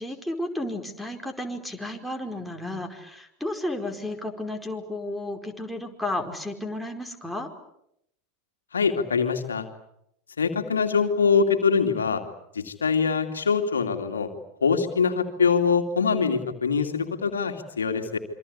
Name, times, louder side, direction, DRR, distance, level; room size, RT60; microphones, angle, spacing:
voice 1, 0.0-7.5, left 1 dB, ahead, 1 dB, 4.9 m, -33 dB
voice 2, 8.7-9.7 10.4-12.2 12.5-14.3 14.6-18.2, left 5 dB, 80° left, 6 dB, 2.6 m, -23 dB
27.0 x 25.5 x 8.5 m, 0.77 s
figure-of-eight pair, 85°, 0 cm